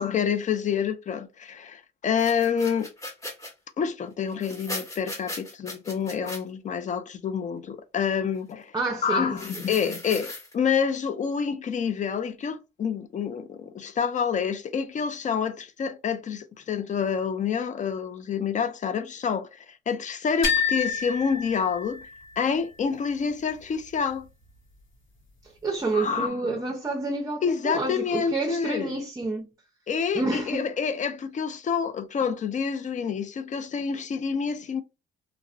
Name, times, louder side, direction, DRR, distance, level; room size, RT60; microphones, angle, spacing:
voice 1, 0.0-2.9 3.8-8.7 9.0-22.0 22.4-24.3 25.9-26.6 27.4-28.9 29.9-34.8, left 6 dB, 40° left, 0.4 m, -28 dB
sound 1, 2.1-3.5 4.3-6.4 9.3-10.5, left 1 dB, 15° left, 1.0 m, -38 dB
voice 2, 8.7-9.4 25.6-29.5 30.1-30.7, right 3 dB, 15° right, 0.5 m, -29 dB
sound 2, 20.4-22.4, left 6 dB, 70° left, 0.9 m, -28 dB
2.5 x 2.0 x 2.4 m
cardioid pair, 90°, 20 cm